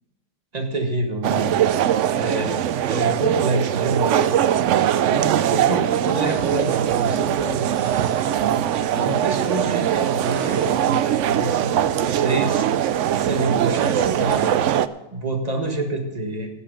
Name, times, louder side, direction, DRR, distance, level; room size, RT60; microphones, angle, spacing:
voice 1, 0.5-1.5 2.1-2.6 2.8-4.4 5.1-7.6 8.4-14.7 15.1-16.5, right 2 dB, 25° right, 3 dB, 1.7 m, -27 dB
sound 1, 1.2-14.9, right 11 dB, 80° right, 0.6 m, -21 dB
sound 2, 6.2-11.2, right 4 dB, 50° right, 1.0 m, -35 dB
17.0 x 8.2 x 5.2 m, 1.1 s
omnidirectional pair, 1.8 m